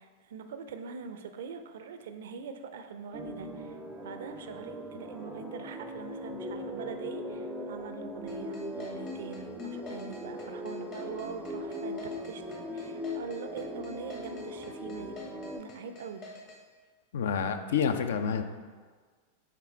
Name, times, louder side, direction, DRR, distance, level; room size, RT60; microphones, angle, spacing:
voice 1, 0.0-3.8 4.0-15.1 15.6-16.2, right 6 dB, 60° right, 8 dB, 0.4 m, -43 dB
sound 1, 3.1-15.6, left 1 dB, 5° right, 0.5 m, -39 dB
sound 2, 8.3-16.6, left 2 dB, 40° left, 1.1 m, -48 dB
voice 2, 17.1-18.4, left 7 dB, 60° left, 8 dB, 0.4 m, -28 dB
5.8 x 3.7 x 4.4 m, 1.5 s
figure-of-eight pair, 90°, 0 cm